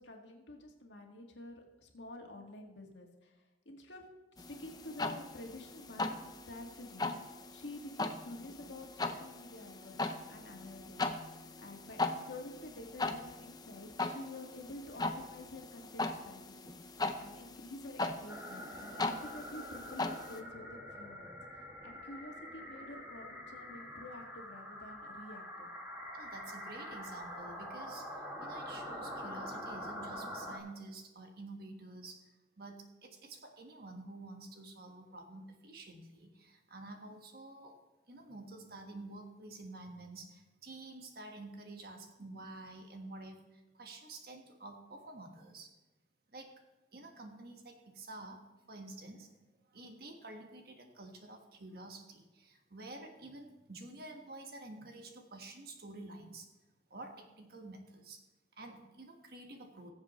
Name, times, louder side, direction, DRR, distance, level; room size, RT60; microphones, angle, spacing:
voice 1, 0.0-4.1 4.5-11.0 11.6-16.8 17.2-21.4 21.8-25.7, left 1 dB, 90° left, 1 dB, 1.9 m, -49 dB
sound 1, 4.4-20.4, left 2 dB, 20° left, 0.6 m, -40 dB
sound 2, 18.3-30.6, equal, 10° right, 2.0 m, -45 dB
voice 2, 26.1-32.3 32.6-37.8 38.1-45.7 46.3-46.6 46.9-49.3 49.7-56.5 56.9-58.2 58.6-59.9, right 2 dB, 55° right, 4 dB, 1.5 m, -49 dB
20.0 x 7.4 x 3.1 m, 1.1 s
head